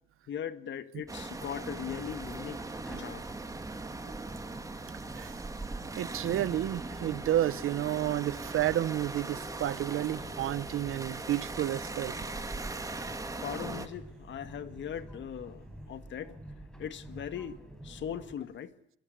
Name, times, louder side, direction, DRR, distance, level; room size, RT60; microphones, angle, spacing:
voice 1, 0.3-2.6 3.0-3.3 13.4-16.4 16.8-17.6 17.8-18.7, left 9 dB, 65° left, 1.9 m, -39 dB
sound 1, 1.1-13.9, right 3 dB, 15° right, 2.2 m, -40 dB
sound 2, 1.6-18.4, right 1 dB, 5° left, 5.3 m, -49 dB
voice 2, 5.8-12.2, right 13 dB, 90° right, 1.0 m, -31 dB
sound 3, 6.5-13.9, left 7 dB, 85° left, 3.9 m, -54 dB
24.5 x 23.0 x 8.1 m
wide cardioid pair, 165°, 21 cm